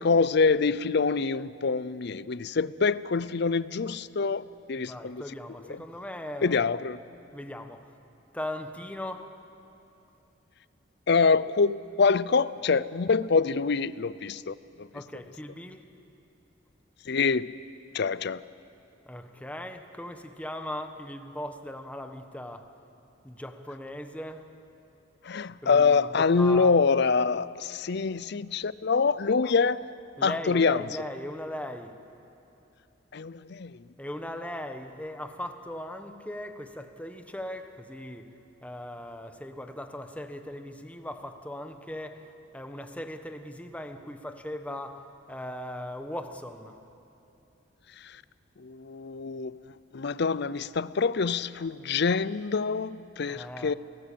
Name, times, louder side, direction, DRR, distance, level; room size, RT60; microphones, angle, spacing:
voice 1, 0.0-5.2 5.7-5.8 6.4-7.0 11.1-14.9 17.1-17.5 17.9-18.4 25.2-29.8 30.2-30.8 33.1-33.8 48.0-48.2 48.6-49.6 49.9-53.7, left 4 dB, 60° left, 0.6 m, -25 dB
voice 2, 4.8-6.7 7.3-7.8 8.3-9.3 14.9-15.9 19.1-22.7 23.2-24.4 25.6-26.7 30.2-31.9 34.0-38.3 38.6-42.3 42.5-45.0 45.3-46.8 53.3-53.8, left 1 dB, 5° left, 1.3 m, -38 dB
28.5 x 18.5 x 8.7 m
head